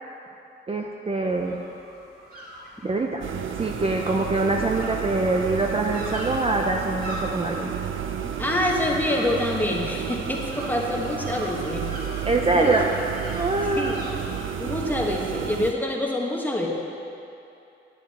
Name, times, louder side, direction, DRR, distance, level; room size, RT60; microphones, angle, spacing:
voice 1, 0.7-1.6 2.8-3.3 3.6-7.7 12.2-12.8 13.4-14.2, right 2 dB, 30° right, 1 dB, 0.6 m, -24 dB
sound 1, 1.2-14.4, equal, 50° right, 2.5 m, -42 dB
sound 2, 3.2-15.7, right 8 dB, 85° right, 0.5 m, -31 dB
voice 2, 8.4-11.9 12.6-12.7 13.8-13.9 14.6-16.7, left 1 dB, 10° left, -2 dB, 1.3 m, -26 dB
10.5 x 9.2 x 4.2 m, 2.7 s
wide cardioid pair, 100°, 20 cm